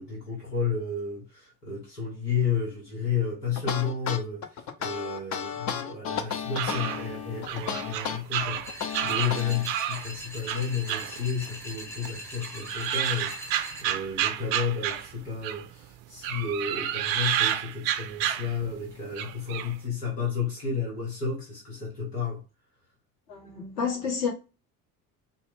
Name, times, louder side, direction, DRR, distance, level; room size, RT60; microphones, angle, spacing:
voice 1, 0.0-8.6 9.0-22.4, left 6 dB, 85° left, 1.4 m, -32 dB
sound 1, 3.5-9.6, left 7 dB, 40° left, 0.6 m, -33 dB
sound 2, 6.3-10.1 10.5-11.8 12.0-15.7 16.2-18.8 19.1-19.7, right 11 dB, 50° right, 0.5 m, -30 dB
sound 3, 8.6-13.8, equal, 5° left, 0.8 m, -41 dB
voice 2, 23.3-24.3, left 6 dB, 55° left, 1.5 m, -29 dB
4.2 x 2.2 x 3.5 m
figure-of-eight pair, 55°, 46 cm